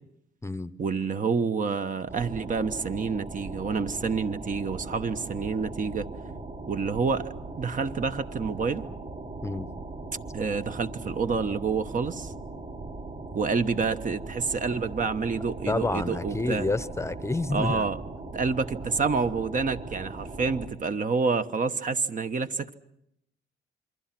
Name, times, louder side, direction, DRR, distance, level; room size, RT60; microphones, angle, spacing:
voice 1, 0.8-6.1 6.7-8.8 10.3-12.3 13.3-16.7 17.5-18.0 18.3-22.7, right 5 dB, 40° right, 9 dB, 1.2 m, -28 dB
sound 1, 2.1-20.7, right 3 dB, 65° right, 6.9 m, -39 dB
voice 2, 15.7-17.9, left 2 dB, 15° left, 14 dB, 0.9 m, -29 dB
27.5 x 23.5 x 6.0 m, 0.79 s
cardioid pair, 90°, 20 cm